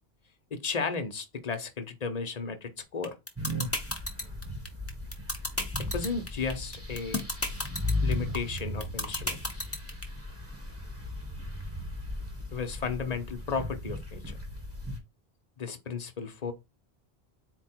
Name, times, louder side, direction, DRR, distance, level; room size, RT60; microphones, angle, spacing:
voice 1, 0.5-3.1 5.9-7.2 8.0-9.6 12.5-14.4 15.6-16.5, left 5 dB, 45° left, 0.7 m, -34 dB
sound 1, 3.0-10.0, left 2 dB, 15° left, 0.8 m, -31 dB
sound 2, 3.4-15.0, left 1 dB, 15° right, 1.1 m, -36 dB
4.2 x 2.3 x 4.3 m
omnidirectional pair, 1.0 m